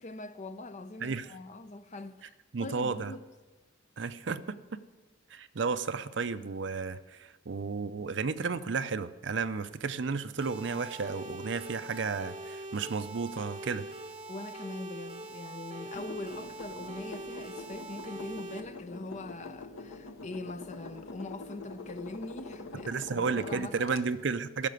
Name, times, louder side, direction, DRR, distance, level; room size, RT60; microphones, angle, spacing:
voice 1, 0.0-2.3 2.6-3.2 14.3-24.1, left 2 dB, 35° left, 0.6 m, -42 dB
voice 2, 1.0-1.3 2.5-3.1 4.0-4.8 5.3-13.9 22.9-24.7, right 4 dB, 60° right, 0.6 m, -33 dB
sound 1, 10.4-18.6, right 2 dB, 30° right, 1.0 m, -43 dB
sound 2, 15.9-24.0, left 3 dB, 70° left, 1.0 m, -45 dB
15.0 x 6.7 x 9.3 m
head